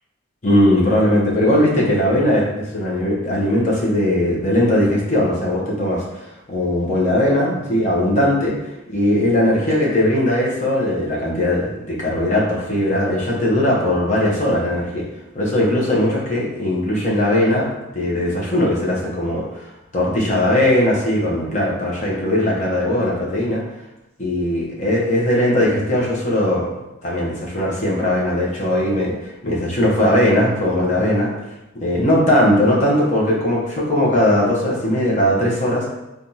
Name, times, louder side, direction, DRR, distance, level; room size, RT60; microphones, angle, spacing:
voice 1, 0.4-15.1 15.3-23.6 24.2-31.3 31.7-35.8, left 1 dB, 35° left, -4 dB, 0.7 m, -19 dB
3.4 x 2.3 x 2.7 m, 0.97 s
head